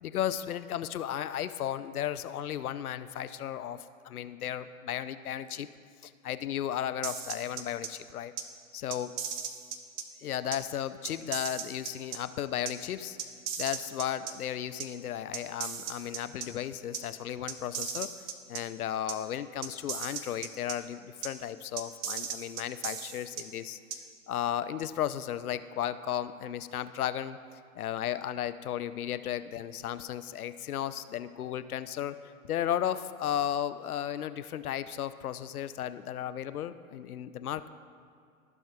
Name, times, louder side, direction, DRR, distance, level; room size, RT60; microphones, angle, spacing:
voice 1, 0.0-5.7 6.0-8.3 8.7-9.1 10.2-13.2 13.6-18.1 18.5-23.8 24.3-27.4 27.7-32.2 32.4-37.7, left 10 dB, 90° left, 13 dB, 0.5 m, -34 dB
sound 1, 7.0-7.9 8.4-8.5 8.9-10.0 10.5-10.6 11.0-12.2 12.7-12.8 13.2-14.3 14.8-14.9 15.3-16.5 16.9-17.0 17.5-18.6 19.1-19.2 19.6-20.7 21.2-21.3 21.8-23.4 23.9-24.0, right 7 dB, 25° right, 0.5 m, -36 dB
15.5 x 6.1 x 2.4 m, 2.2 s
hypercardioid pair, 115°, 43 cm